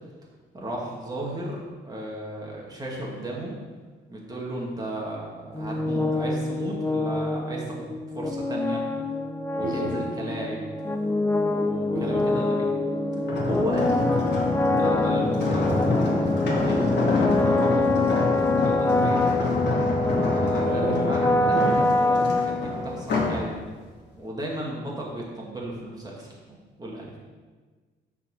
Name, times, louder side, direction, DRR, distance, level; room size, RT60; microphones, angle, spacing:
voice 1, 0.5-3.6 4.1-7.8 8.1-8.8 9.5-10.7 11.4-12.7 13.5-14.1 14.7-17.9 18.6-19.2 20.2-23.6 24.1-27.1, right 1 dB, 20° right, -3 dB, 1.9 m, -34 dB
sound 1, 5.5-23.2, left 2 dB, 10° left, 0.6 m, -25 dB
voice 2, 9.6-9.9 11.9-12.2 20.6-21.1 21.4-21.9, right 3 dB, 45° right, 1 dB, 1.4 m, -31 dB
sound 2, 13.2-23.4 23.9-24.2, left 3 dB, 60° left, 2.0 m, -27 dB
6.8 x 4.6 x 6.2 m, 1.4 s
cardioid pair, 90°, 20 cm